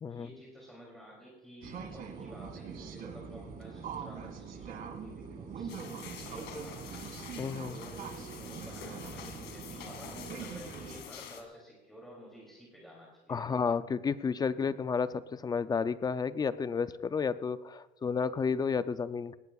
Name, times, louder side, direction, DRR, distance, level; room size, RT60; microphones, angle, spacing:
voice 1, 0.1-5.8 6.2-7.0 7.7-13.6, equal, ahead, -4 dB, 2.8 m, -52 dB
sound 1, 1.6-11.0, right 6 dB, 50° right, 2.1 m, -43 dB
sound 2, 5.7-11.4, left 7 dB, 65° left, 2.2 m, -47 dB
voice 2, 7.4-7.8 13.3-19.4, left 5 dB, 20° left, 14 dB, 0.4 m, -31 dB
20.0 x 18.0 x 2.4 m, 1.1 s
cardioid pair, 140°, 20 cm